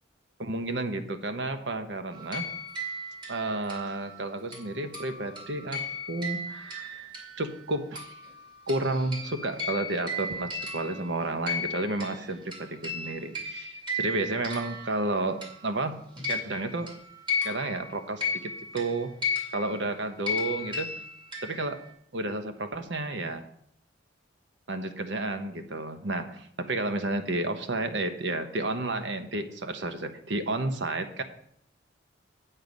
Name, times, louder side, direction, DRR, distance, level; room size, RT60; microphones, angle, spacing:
voice 1, 0.4-2.5 3.3-5.8 6.1-7.1 7.4-8.1 8.7-15.9 16.3-16.9 17.4-19.1 19.5-20.9 21.4-21.8 22.1-23.4 24.7-31.2, right 2 dB, 70° right, 8 dB, 1.0 m, -31 dB
sound 1, 2.1-7.7 8.0-15.8 16.2-21.9, left 3 dB, 25° right, 2.2 m, -35 dB
8.2 x 7.9 x 5.2 m, 0.69 s
head